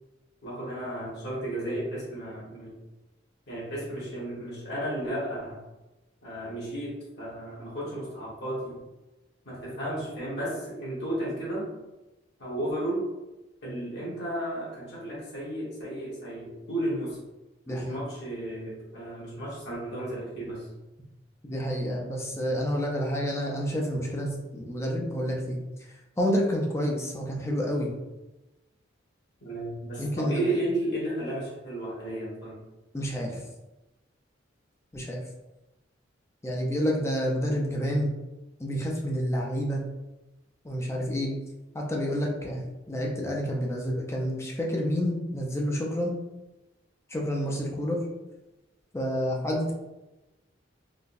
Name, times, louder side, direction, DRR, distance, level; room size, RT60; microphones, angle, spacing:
voice 1, 0.4-2.7 3.5-5.6 6.2-8.8 9.4-11.6 12.4-13.0 13.6-17.2 17.7-20.7 29.4-32.6, right 1 dB, 60° left, -6 dB, 1.4 m, -33 dB
voice 2, 17.7-18.0 21.4-25.6 26.2-27.9 30.0-30.5 32.9-33.4 34.9-35.2 36.4-38.2 38.6-39.8 40.6-41.3 41.7-46.2 47.1-48.0 48.9-49.7, equal, 15° left, -1 dB, 0.4 m, -29 dB
3.8 x 2.2 x 2.6 m, 1.0 s
head